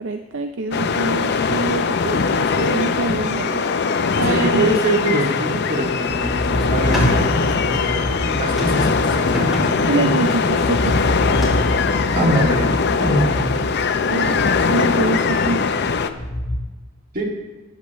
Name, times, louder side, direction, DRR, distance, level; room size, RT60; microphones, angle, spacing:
voice 1, 0.0-3.6 4.2-4.8 9.9-11.2 14.1-14.4 14.7-15.6, right 2 dB, 70° right, 7 dB, 0.6 m, -25 dB
sound 1, 0.7-16.1, left 5 dB, 60° left, 0.6 m, -21 dB
voice 2, 4.3-10.1 12.1-12.7 13.0-13.4 17.1-17.2, right 1 dB, 45° right, -1 dB, 2.4 m, -23 dB
sound 2, 6.1-16.6, left 1 dB, 40° left, 1.6 m, -28 dB
sound 3, 6.3-13.9, equal, ahead, 3.2 m, -29 dB
15.0 x 9.6 x 3.1 m, 1.2 s
head